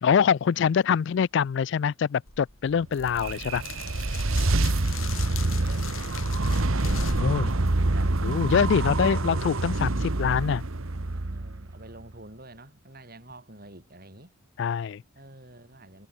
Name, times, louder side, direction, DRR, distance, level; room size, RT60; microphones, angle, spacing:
voice 1, 0.0-3.6 7.2-7.5 8.2-10.6 14.6-15.0, left 7 dB, 55° left, 0.3 m, -24 dB
sound 1, 2.3-8.6, left 5 dB, 70° left, 7.1 m, -40 dB
sound 2, 2.8-12.0, right 2 dB, 75° right, 1.4 m, -26 dB
voice 2, 4.9-8.1 8.5-9.2 11.1-14.3 15.1-16.1, right 2 dB, 45° right, 5.7 m, -48 dB
head